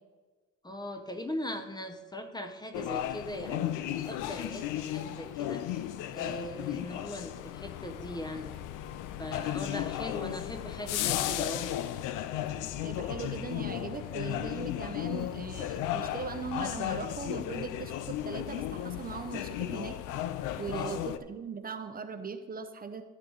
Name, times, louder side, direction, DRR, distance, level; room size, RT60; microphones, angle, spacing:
voice 1, 0.6-5.8 6.1-8.5 9.2-11.7 20.7-21.1, left 1 dB, 15° left, 7 dB, 0.8 m, -40 dB
sound 1, 2.7-21.2, left 12 dB, 85° left, 0.6 m, -35 dB
voice 2, 12.8-20.0 20.6-23.0, right 5 dB, 30° right, 7 dB, 0.7 m, -39 dB
13.0 x 6.7 x 3.9 m, 1.3 s
cardioid pair, 110°, 30 cm